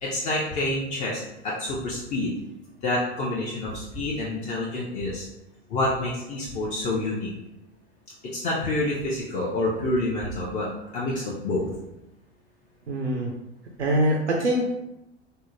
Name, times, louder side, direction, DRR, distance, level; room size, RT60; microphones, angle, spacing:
voice 1, 0.0-2.3 2.8-5.3 5.7-7.3 8.2-10.7 10.9-11.7, left 1 dB, 25° left, -4 dB, 0.4 m, -28 dB
voice 2, 12.9-13.3 13.8-14.8, right 1 dB, 85° right, 0 dB, 0.5 m, -23 dB
3.5 x 2.0 x 2.7 m, 0.92 s
figure-of-eight pair, 85°, 34 cm